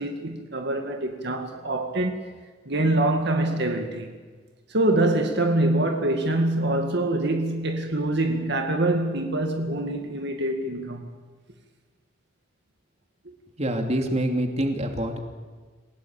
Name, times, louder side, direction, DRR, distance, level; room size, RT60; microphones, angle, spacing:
voice 1, 0.0-2.3 2.7-4.1 4.7-11.1 13.3-13.4, right 1 dB, 60° right, 2.2 m, -25 dB
voice 2, 13.6-15.2, right 1 dB, 35° right, 2.9 m, -26 dB
28.5 x 18.0 x 9.0 m
head